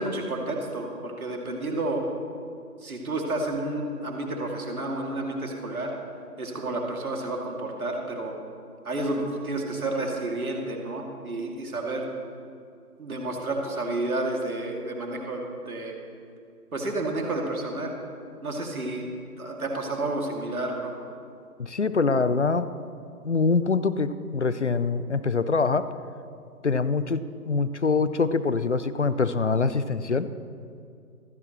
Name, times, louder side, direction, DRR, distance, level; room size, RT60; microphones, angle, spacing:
voice 1, 0.0-2.0 2.8-5.9 6.4-8.3 8.8-12.1 13.0-15.9 16.7-17.9 18.4-19.1 19.4-20.9, right 2 dB, 65° right, 0 dB, 2.5 m, -30 dB
voice 2, 21.6-22.7 23.2-25.9 26.6-30.3, left 4 dB, 50° left, 14 dB, 0.6 m, -24 dB
26.5 x 10.5 x 3.0 m, 2.3 s
figure-of-eight pair, 160°, 47 cm